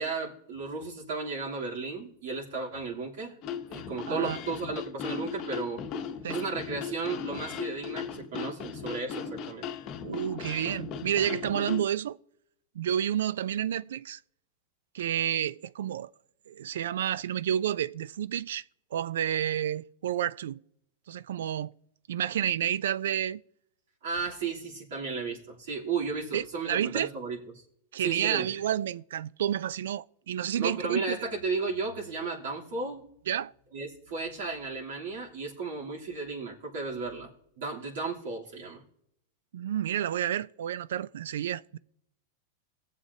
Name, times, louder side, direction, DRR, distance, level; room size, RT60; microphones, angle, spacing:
voice 1, 0.0-3.4 3.7-5.8 6.3-9.7 24.0-27.6 28.0-28.5 30.5-33.0 33.7-37.3 37.6-38.8, right 4 dB, 75° right, 3.1 m, -34 dB
sound 1, 3.4-11.8, left 7 dB, 35° left, 0.9 m, -37 dB
voice 2, 10.0-12.2 12.8-14.2 14.9-16.1 16.5-18.6 18.9-20.6 21.1-21.7 22.1-23.4 26.3-27.1 27.9-31.2 33.3-33.5 39.5-41.8, right 10 dB, 90° right, 0.3 m, -30 dB
19.0 x 7.5 x 2.8 m
supercardioid pair, 155°, 0 cm